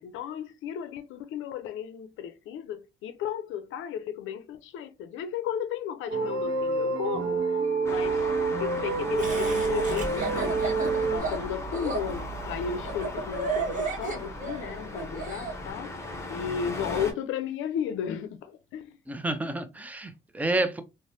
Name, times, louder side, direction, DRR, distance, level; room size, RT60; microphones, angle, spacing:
voice 1, 0.0-7.4 7.8-8.3 8.6-10.6 11.1-15.9 16.3-19.0, left 8 dB, 85° left, 0.5 m, -34 dB
sound 1, 6.1-11.2, right 4 dB, 70° right, 0.9 m, -27 dB
Traffic noise roadway noise, 7.8-17.1, left 2 dB, 15° left, 0.8 m, -37 dB
Laughter, 9.2-15.5, right 3 dB, 40° right, 1.1 m, -33 dB
voice 2, 19.1-20.8, right 2 dB, 10° right, 0.5 m, -29 dB
3.2 x 2.1 x 2.7 m
cardioid pair, 90°, 20 cm